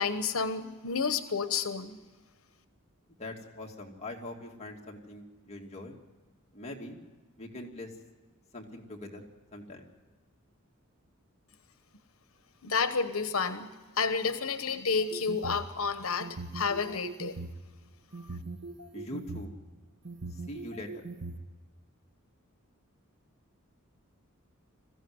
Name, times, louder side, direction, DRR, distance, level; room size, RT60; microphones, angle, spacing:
voice 1, 0.0-2.0 12.6-13.7 14.0-17.4, left 5 dB, 80° left, 11 dB, 1.1 m, -30 dB
voice 2, 3.2-6.0 6.5-7.0 7.4-7.9 8.5-9.9 18.9-19.5 20.5-20.9, left 1 dB, 30° left, 0 dB, 2.5 m, -42 dB
sound 1, 15.0-15.7 16.2-17.6 18.1-19.4 20.0-21.3, right 3 dB, 60° right, 1.3 m, -40 dB
21.5 x 15.5 x 9.6 m, 1.3 s
head